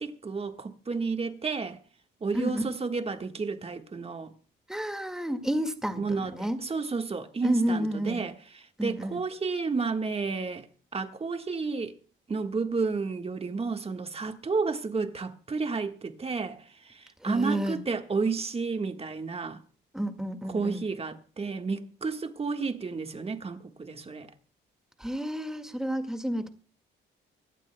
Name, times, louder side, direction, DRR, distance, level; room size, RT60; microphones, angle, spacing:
voice 1, 0.0-1.8 2.2-4.3 6.0-8.3 8.8-10.7 10.9-11.9 12.3-19.6 20.5-24.3, right 4 dB, 30° right, 1.5 m, -31 dB
voice 2, 4.7-6.6 7.4-8.2 8.8-9.2 17.2-17.8 19.9-20.9 25.0-26.5, equal, 5° right, 1.9 m, -30 dB
25.0 x 12.5 x 2.2 m
cardioid pair, 90°, 20 cm